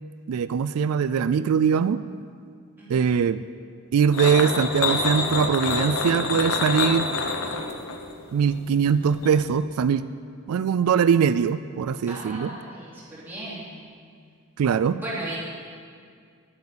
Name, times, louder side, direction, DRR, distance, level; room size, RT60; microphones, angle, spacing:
voice 1, 0.3-2.0 2.9-3.4 3.9-7.1 8.3-10.1 10.5-12.5 14.6-15.0, right 7 dB, 90° right, 13 dB, 0.3 m, -22 dB
sound 1, 4.1-9.5, left 4 dB, 70° left, 0.9 m, -27 dB
voice 2, 12.1-13.7 14.9-15.4, right 1 dB, 10° right, -8 dB, 3.0 m, -36 dB
11.0 x 8.1 x 6.8 m, 2.1 s
head